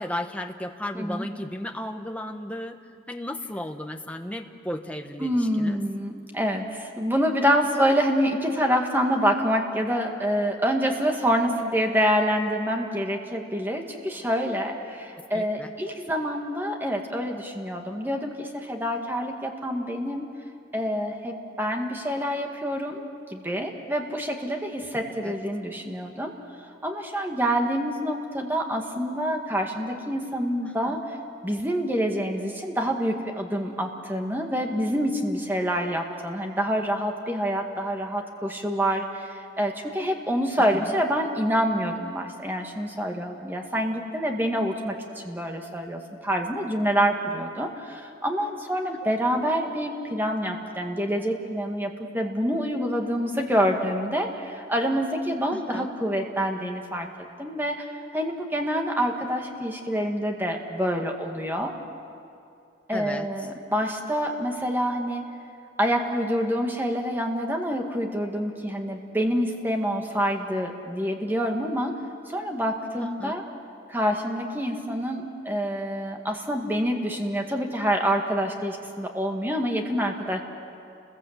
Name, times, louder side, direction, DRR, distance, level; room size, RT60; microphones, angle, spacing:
voice 1, 0.0-2.8 3.1-5.8 15.3-15.7 25.2-25.3 30.6-31.0 40.7-40.9 55.5-55.9 62.9-63.3 73.0-73.4, left 1 dB, 5° left, 5 dB, 1.1 m, -35 dB
voice 2, 0.9-1.3 5.2-20.3 20.7-26.3 26.8-31.2 31.4-57.1 57.4-57.9 58.1-61.7 62.9-65.3 65.8-72.0 72.3-73.4 73.9-80.4, equal, 10° right, 2 dB, 1.9 m, -27 dB
29.5 x 21.5 x 8.1 m, 2.5 s
head